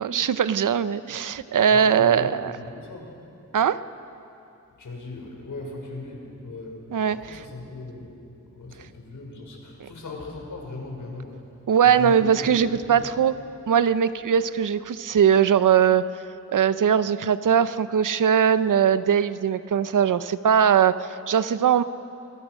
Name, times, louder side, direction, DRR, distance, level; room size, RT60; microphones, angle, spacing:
voice 1, 0.0-2.5 3.5-3.8 6.9-7.4 9.8-9.9 11.7-13.4 13.7-16.0 16.5-21.8, right 8 dB, 80° right, 14 dB, 0.7 m, -20 dB
voice 2, 1.6-3.2 4.8-6.8 7.1-8.2 8.5-11.4 11.8-13.0, left 2 dB, 80° left, -1 dB, 5.6 m, -38 dB
26.5 x 21.5 x 6.4 m, 2.8 s
wide cardioid pair, 135°, 31 cm